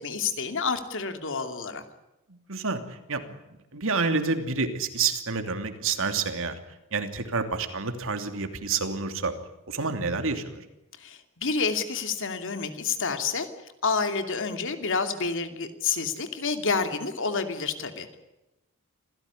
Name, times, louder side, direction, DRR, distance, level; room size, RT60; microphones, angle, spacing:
voice 1, 0.0-1.8 11.0-13.5 13.8-18.2, left 5 dB, 60° left, 8 dB, 2.7 m, -29 dB
voice 2, 2.3-3.2 3.7-6.6 6.9-9.3 9.7-10.6, right 4 dB, 65° right, 8 dB, 2.9 m, -28 dB
27.0 x 16.5 x 9.7 m, 0.99 s
head